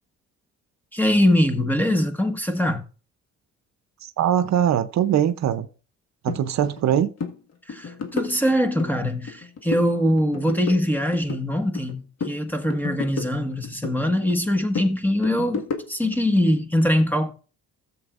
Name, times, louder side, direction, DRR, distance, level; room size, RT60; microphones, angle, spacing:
voice 1, 0.9-2.8 7.7-17.3, left 1 dB, 5° left, 1.4 m, -22 dB
voice 2, 4.0-5.7 6.2-7.1, right 10 dB, 65° right, 0.7 m, -21 dB
sound 1, 6.3-6.4 6.8-6.9 7.2-7.4 7.7-8.9 9.3-9.9 10.2-11.9 12.2-14.0 14.3-16.1, left 5 dB, 55° left, 1.7 m, -32 dB
14.5 x 7.4 x 2.5 m
cardioid pair, 90°, 30 cm